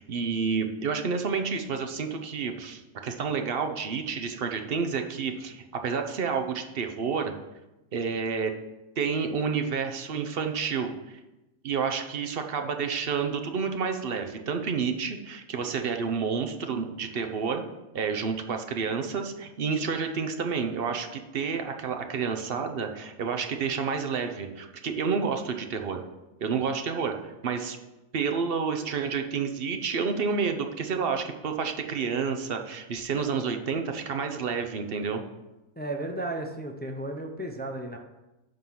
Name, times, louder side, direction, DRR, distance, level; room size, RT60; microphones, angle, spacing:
voice 1, 0.0-7.3 7.9-8.5 9.0-10.9 11.6-17.6 17.9-26.0 26.4-27.8 28.1-35.2, right 5 dB, 50° right, 6 dB, 0.9 m, -29 dB
voice 2, 35.8-38.0, right 1 dB, 15° left, 3 dB, 0.4 m, -34 dB
10.5 x 3.9 x 5.8 m, 1.0 s
omnidirectional pair, 1.4 m